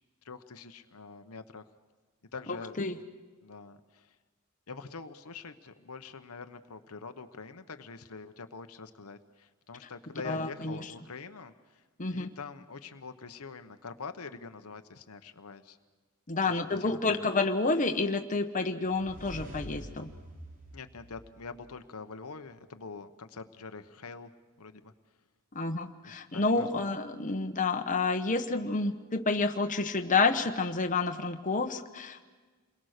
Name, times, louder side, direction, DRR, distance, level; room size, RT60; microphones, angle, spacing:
voice 1, 0.2-1.6 2.3-2.8 3.4-4.2 4.7-11.8 12.1-15.8 16.4-17.2 20.7-24.3 24.6-24.9 26.0-26.8, left 4 dB, 80° left, 8 dB, 1.0 m, -45 dB
voice 2, 10.2-10.9 12.0-12.3 16.3-20.1 25.5-32.2, left 3 dB, 35° left, 5 dB, 1.1 m, -29 dB
sound 1, 18.8-21.8, equal, 40° right, 3.6 m, -46 dB
28.5 x 22.0 x 6.6 m, 1.4 s
head